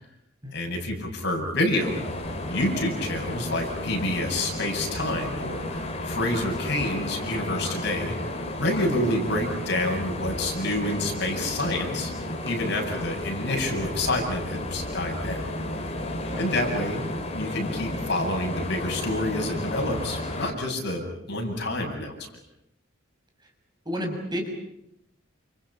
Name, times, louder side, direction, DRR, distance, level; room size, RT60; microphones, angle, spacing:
voice 1, 0.5-2.0 2.5-8.1 8.6-15.5 16.4-22.1, left 1 dB, 55° left, 2 dB, 7.9 m, -28 dB
sound 1, 1.8-20.5, left 1 dB, 30° left, 3.7 m, -33 dB
voice 2, 23.8-24.6, equal, 20° right, 3 dB, 6.4 m, -31 dB
30.0 x 29.0 x 5.9 m, 0.75 s
head